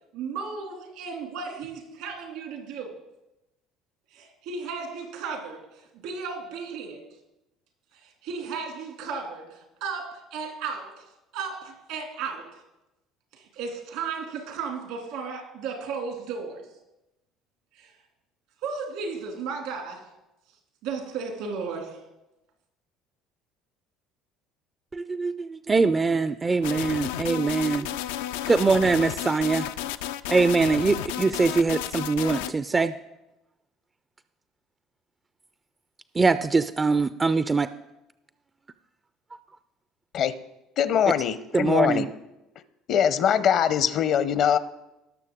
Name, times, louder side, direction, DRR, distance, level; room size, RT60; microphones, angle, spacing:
voice 1, 0.1-2.9 4.1-7.0 7.9-11.1 11.3-12.6 13.3-16.7 17.8-17.9 18.6-20.1 20.8-22.0, right 5 dB, 75° right, 3 dB, 2.5 m, -35 dB
voice 2, 24.9-27.9 28.5-29.7 30.3-32.9 36.2-37.7 41.5-42.1, right 4 dB, 25° right, 13 dB, 0.4 m, -23 dB
sound 1, 26.6-32.5, left 12 dB, 80° left, 0.3 m, -32 dB
voice 3, 40.8-42.1 42.9-44.6, left 9 dB, 60° left, 14 dB, 0.7 m, -22 dB
18.5 x 6.6 x 3.7 m, 0.93 s
hypercardioid pair, 65°, 0 cm